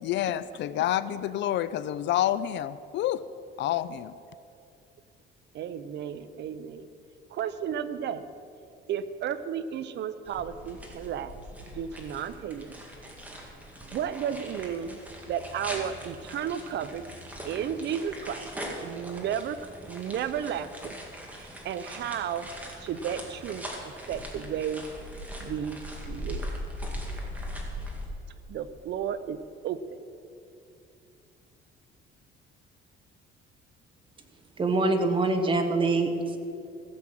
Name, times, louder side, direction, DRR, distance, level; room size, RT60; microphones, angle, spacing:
voice 1, 0.0-3.2 3.6-4.1, left 12 dB, 60° left, 0.4 m, -28 dB
voice 2, 5.5-6.9 7.3-8.2 8.9-11.3 11.7-12.8 13.9-15.0 15.3-17.0 17.4-18.5 18.8-19.6 19.9-20.9 21.4-22.5 22.8-24.8 25.4-26.5 28.5-29.4 29.6-29.8, right 9 dB, 55° right, 0.6 m, -33 dB
sound 1, 10.2-28.0, equal, 5° right, 2.0 m, -40 dB
voice 3, 34.6-36.4, right 3 dB, 25° right, 1.2 m, -24 dB
15.5 x 7.4 x 7.7 m
cardioid pair, 150°, 21 cm